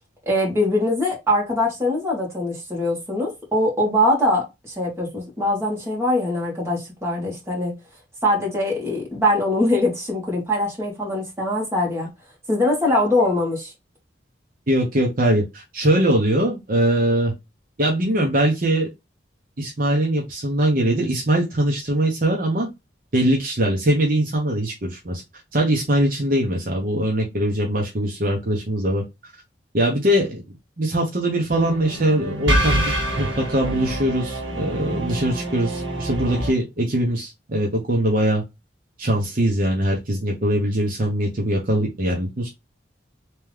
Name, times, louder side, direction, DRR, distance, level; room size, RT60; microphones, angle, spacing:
voice 1, 0.3-7.7 8.2-12.1 12.5-13.7, left 1 dB, 15° right, 1.8 m, -22 dB
voice 2, 14.7-17.3 17.8-18.9 19.6-22.7 23.1-25.2 25.5-29.0 29.7-30.4 30.8-38.4 39.0-42.5, right 1 dB, 50° right, 0.9 m, -22 dB
sound 1, 31.5-36.5, right 1 dB, 80° right, 1.7 m, -26 dB
3.5 x 3.0 x 3.4 m
head